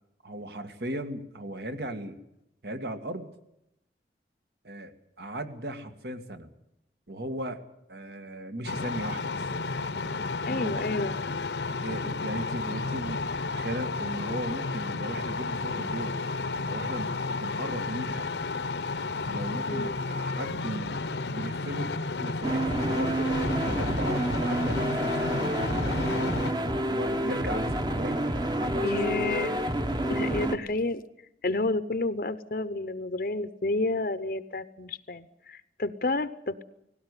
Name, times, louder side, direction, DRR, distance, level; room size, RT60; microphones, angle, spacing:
voice 1, 0.2-2.2 2.6-3.3 4.6-6.5 7.1-7.6 7.9-9.5 10.5-10.7 11.8-16.1 16.7-17.1 17.4-18.3 19.3-21.9 22.2-26.4 26.9-29.5, right 1 dB, 65° right, 8 dB, 1.9 m, -37 dB
sound 1, 8.6-26.5, left 3 dB, 80° left, 0.9 m, -32 dB
voice 2, 10.5-11.2 19.7-20.0 28.8-29.5 30.1-31.0 31.4-36.6, left 2 dB, 55° left, 12 dB, 0.7 m, -30 dB
sound 2, 22.4-30.6, right 1 dB, 25° right, 1.0 m, -29 dB
19.0 x 17.0 x 9.7 m, 0.85 s
head